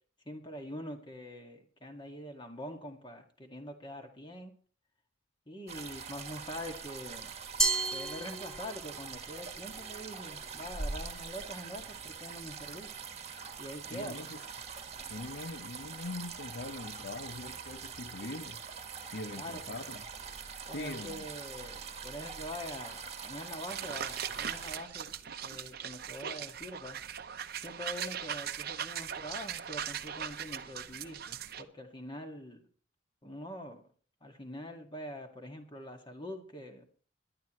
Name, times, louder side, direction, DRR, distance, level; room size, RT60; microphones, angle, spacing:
voice 1, 0.3-4.5 5.5-7.3 7.9-12.9 13.6-14.3 19.3-20.0 20.7-25.1 25.4-27.0 27.6-32.6 33.2-33.8 34.2-36.8, equal, 25° left, 2.0 m, -44 dB
sound 1, 5.7-24.7, right 5 dB, 35° right, 1.5 m, -43 dB
Glass, 7.6-9.0, right 3 dB, 5° left, 1.3 m, -31 dB
voice 2, 13.9-14.4 15.1-18.6 19.1-20.0 20.7-21.2, left 2 dB, 55° left, 0.7 m, -42 dB
sound 2, 23.7-31.6, right 8 dB, 50° right, 0.8 m, -39 dB
21.5 x 11.0 x 3.2 m
head